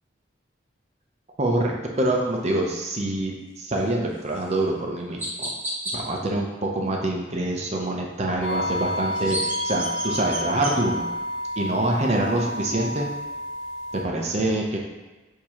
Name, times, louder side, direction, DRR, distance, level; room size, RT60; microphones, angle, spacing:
voice 1, 1.4-5.5 5.9-11.1 11.6-13.1 13.9-14.8, right 1 dB, 35° right, 0 dB, 0.5 m, -25 dB
Chirp tweet, 4.3-4.4 5.2-5.9 8.9-10.7, right 1 dB, 10° right, 0.9 m, -31 dB
sound 1, 8.4-14.0, equal, 75° left, 0.8 m, -30 dB
6.6 x 2.7 x 2.9 m, 1.2 s
head